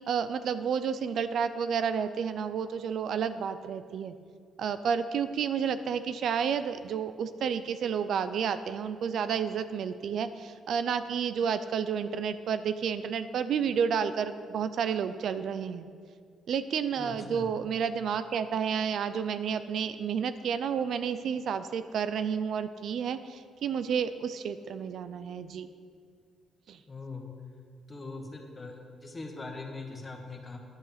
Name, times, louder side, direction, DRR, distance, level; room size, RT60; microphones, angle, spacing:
voice 1, 0.1-4.1 4.6-15.9 16.5-25.7 26.7-26.8, right 7 dB, 65° right, 11 dB, 0.4 m, -31 dB
voice 2, 17.0-17.5 26.9-27.3 27.9-30.6, left 3 dB, 25° left, 2 dB, 1.6 m, -41 dB
10.5 x 6.6 x 5.9 m, 2.1 s
cardioid pair, 90°, 0 cm